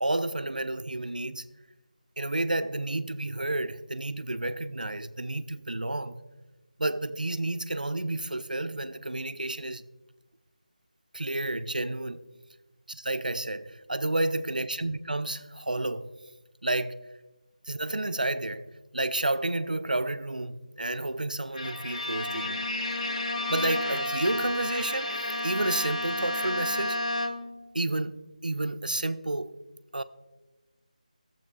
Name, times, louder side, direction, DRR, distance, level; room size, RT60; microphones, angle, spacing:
voice 1, 0.0-1.5 2.2-6.2 6.8-9.8 11.1-12.2 12.9-16.1 16.6-17.1 17.7-22.6 23.5-27.0 27.7-29.6 29.9-30.0, right 2 dB, 85° right, 0.5 m, -31 dB
Bowed string instrument, 21.5-27.6, left 1 dB, 55° left, 0.8 m, -31 dB
17.0 x 7.4 x 2.3 m
figure-of-eight pair, 165°, 4 cm